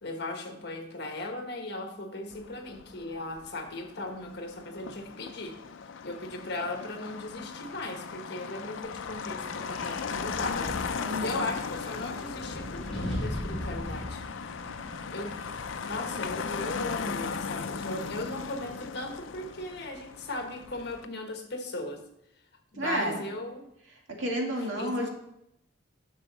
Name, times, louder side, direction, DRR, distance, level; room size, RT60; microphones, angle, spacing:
voice 1, 0.0-5.6 6.0-10.8 11.2-14.2 15.1-15.4 15.9-22.0 22.7-23.7 24.8-25.1, left 2 dB, 60° left, 4 dB, 1.4 m, -37 dB
Motor vehicle (road), 2.3-21.1, left 5 dB, 85° left, 0.5 m, -38 dB
Wind, 8.8-18.8, left 1 dB, 5° left, 3.8 m, -41 dB
voice 2, 11.0-11.4 22.8-23.2 24.1-25.1, right 1 dB, 75° right, 0 dB, 2.1 m, -31 dB
10.0 x 6.2 x 4.2 m, 0.79 s
head